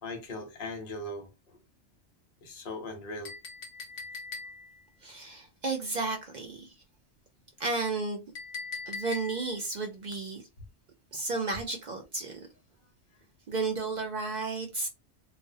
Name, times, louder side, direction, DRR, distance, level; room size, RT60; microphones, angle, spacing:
voice 1, 0.0-1.3 2.4-3.4, left 2 dB, 55° left, 0.9 m, -39 dB
Chink clink, 3.2-4.8 8.4-9.6, left 4 dB, 85° left, 1.0 m, -40 dB
voice 2, 5.0-6.7 7.6-8.2 8.9-10.4 11.1-12.4 13.5-14.9, right 3 dB, 60° right, 0.5 m, -33 dB
2.4 x 2.0 x 2.6 m
omnidirectional pair, 1.2 m